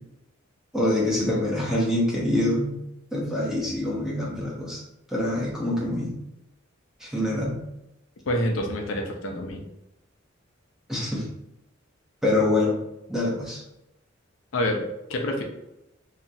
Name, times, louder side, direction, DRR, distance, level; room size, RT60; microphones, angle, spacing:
voice 1, 0.7-2.8 3.1-4.8 5.1-6.1 7.0-7.6 10.9-11.3 12.2-12.8 13.1-13.6, left 1 dB, ahead, -4 dB, 0.6 m, -25 dB
voice 2, 8.3-9.6 14.5-14.8 15.1-15.4, left 1 dB, 80° left, 2 dB, 0.5 m, -27 dB
2.9 x 2.4 x 2.6 m, 0.89 s
head